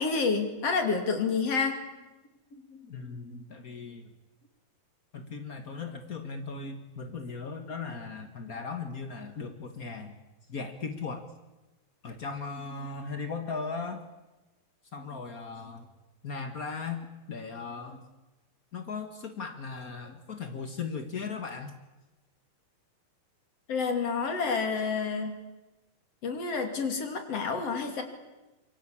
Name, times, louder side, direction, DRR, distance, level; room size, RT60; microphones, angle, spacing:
voice 1, 0.0-1.8 23.7-25.4 26.2-28.0, left 5 dB, 45° left, 6 dB, 3.4 m, -29 dB
voice 2, 2.5-4.1 5.1-10.1 10.5-11.3 12.0-14.0 14.9-15.9 16.2-18.1 18.7-21.7, left 4 dB, 90° left, 7 dB, 0.7 m, -38 dB
26.0 x 23.5 x 8.7 m, 1.1 s
omnidirectional pair, 4.2 m